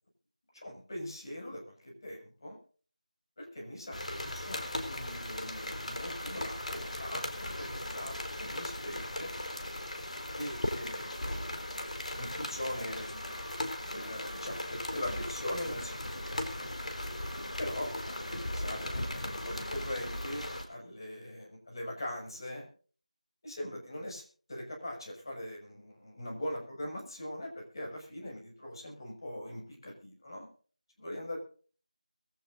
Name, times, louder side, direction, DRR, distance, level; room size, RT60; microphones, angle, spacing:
voice 1, 0.5-2.6 3.4-9.3 10.4-13.5 13.9-16.1 17.6-22.7 23.4-30.5 31.0-31.4, left 1 dB, 35° left, 0 dB, 6.1 m, -41 dB
sound 1, 3.9-20.7, left 1 dB, 60° left, 4.3 m, -38 dB
22.0 x 16.0 x 2.6 m, 0.42 s
figure-of-eight pair, 175°, 4 cm